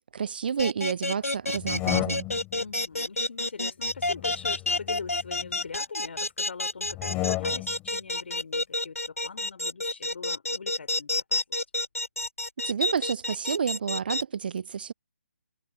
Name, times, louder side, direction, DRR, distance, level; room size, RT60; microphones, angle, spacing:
voice 1, 0.0-2.2 12.6-14.9, right 7 dB, 40° right, 0.7 m, -30 dB
sound 1, 0.6-14.2, left 2 dB, 80° left, 4.0 m, -29 dB
sound 2, 1.5-2.6 3.9-5.6 6.9-7.9, left 20 dB, 15° left, 3.5 m, -33 dB
voice 2, 2.5-11.6, left 5 dB, 50° left, 4.5 m, -42 dB
figure-of-eight pair, 145°, 8 cm